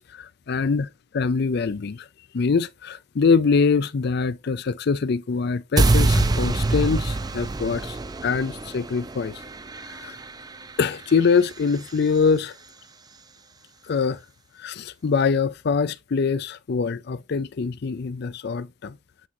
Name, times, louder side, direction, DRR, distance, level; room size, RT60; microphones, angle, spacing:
voice 1, 0.0-2.1 2.3-9.4 9.8-10.2 10.8-12.6 13.9-14.2 14.6-19.0, left 5 dB, 55° left, 0.5 m, -24 dB
sound 1, 5.8-11.9, right 2 dB, 20° right, 0.5 m, -25 dB
7.5 x 6.0 x 3.0 m
head